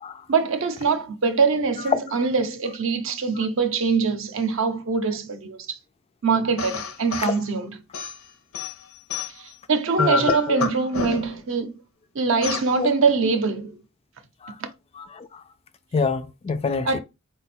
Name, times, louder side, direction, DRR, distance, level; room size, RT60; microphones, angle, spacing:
voice 1, 0.3-5.8 6.2-7.8 9.4-11.8 12.1-13.8 16.9-17.0, right 4 dB, 60° right, 0.6 m, -23 dB
sound 1, 6.6-7.4 7.9-9.5 10.0-11.5 12.4-12.7, left 5 dB, 70° left, 0.6 m, -29 dB
voice 2, 10.0-10.7 12.7-12.9 14.4-14.5 15.0-15.4 15.9-17.0, left 4 dB, 25° left, 0.3 m, -26 dB
4.3 x 2.2 x 4.1 m
head